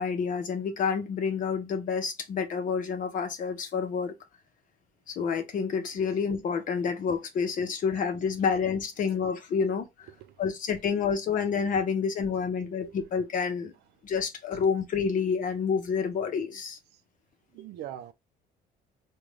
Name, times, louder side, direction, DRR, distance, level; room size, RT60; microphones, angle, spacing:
voice 1, 0.0-4.1 5.1-9.9 10.4-13.7 14.0-16.8, left 6 dB, 50° left, 0.7 m, -28 dB
voice 2, 10.1-10.4 12.6-13.0 16.9-17.0 17.5-18.1, right 11 dB, 75° right, 0.5 m, -43 dB
3.8 x 2.2 x 3.1 m
cardioid pair, 110°, 17 cm